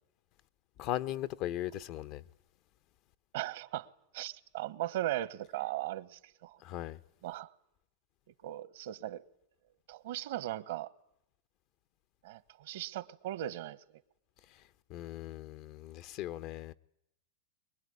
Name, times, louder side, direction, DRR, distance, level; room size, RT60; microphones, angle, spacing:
voice 1, 0.8-2.2 6.6-7.0 14.9-16.7, left 13 dB, 55° left, 1.0 m, -38 dB
voice 2, 3.3-3.9 4.1-6.6 7.2-7.5 8.4-9.2 9.9-10.9 12.2-13.8, right 14 dB, 70° right, 1.3 m, -38 dB
23.5 x 21.5 x 9.7 m
hypercardioid pair, 110°, 0 cm